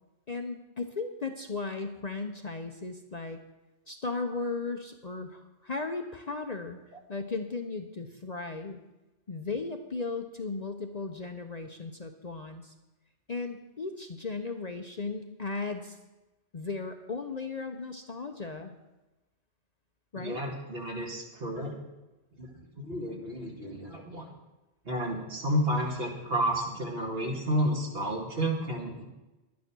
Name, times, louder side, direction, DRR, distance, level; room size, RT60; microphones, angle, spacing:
voice 1, 0.3-3.4 3.9-6.8 7.1-8.8 9.3-12.7 13.3-16.0 16.5-18.7 20.1-20.4, left 3 dB, 40° left, 5 dB, 0.8 m, -36 dB
voice 2, 20.1-21.7 22.4-22.5 22.8-24.3 24.9-29.0, equal, 55° right, 0 dB, 2.4 m, -31 dB
11.5 x 9.5 x 6.1 m, 1.0 s
omnidirectional pair, 1.2 m